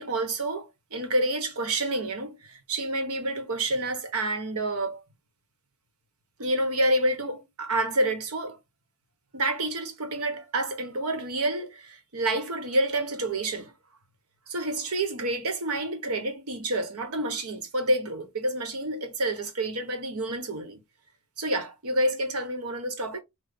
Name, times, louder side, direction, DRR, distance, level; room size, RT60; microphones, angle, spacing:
voice 1, 0.0-5.0 6.4-8.6 9.3-13.7 14.5-20.8 21.4-23.2, right 1 dB, 80° right, 1.1 m, -28 dB
5.8 x 2.3 x 3.5 m
head